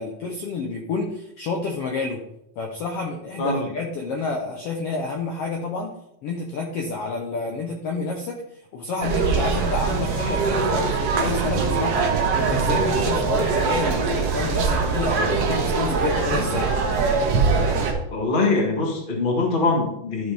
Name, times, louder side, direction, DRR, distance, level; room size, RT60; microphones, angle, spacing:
voice 1, 0.0-2.2 2.6-5.9 6.2-8.4 8.7-12.1 12.3-16.7, left 3 dB, 90° left, 1 dB, 1.3 m, -29 dB
voice 2, 3.4-3.7 18.1-20.3, left 3 dB, 45° left, 0 dB, 0.6 m, -23 dB
sound 1, 9.0-17.9, right 4 dB, 60° right, 1.8 m, -22 dB
12.5 x 5.1 x 3.4 m, 0.81 s
omnidirectional pair, 3.9 m